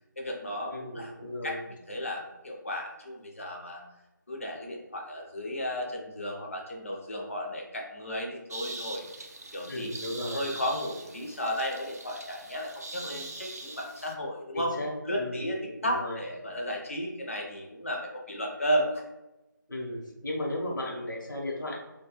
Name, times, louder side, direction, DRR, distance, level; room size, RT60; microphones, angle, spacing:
voice 1, 0.2-3.8 4.3-9.1 9.5-14.7 15.1-19.0, equal, 40° left, 0 dB, 0.5 m, -34 dB
voice 2, 0.7-1.6 9.7-10.4 14.5-15.4 15.8-16.2 19.7-21.8, left 1 dB, 70° left, -2 dB, 0.8 m, -35 dB
sound 1, 8.5-14.1, right 2 dB, 50° right, 0.4 m, -42 dB
2.7 x 2.2 x 2.9 m, 0.99 s
figure-of-eight pair, 180°, 11 cm